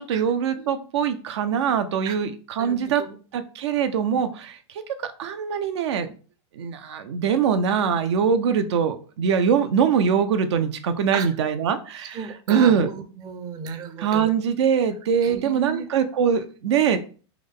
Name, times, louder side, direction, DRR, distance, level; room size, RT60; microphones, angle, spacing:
voice 1, 0.0-3.0 3.3-4.6 5.2-6.1 6.6-12.2 12.5-12.9 14.0-17.0, right 7 dB, 85° right, 9 dB, 0.5 m, -22 dB
voice 2, 2.6-3.2 11.1-11.3 12.1-14.4 15.2-15.9, right 6 dB, 30° right, 8 dB, 0.5 m, -34 dB
3.4 x 2.1 x 3.6 m, 0.38 s
supercardioid pair, 140°, 14 cm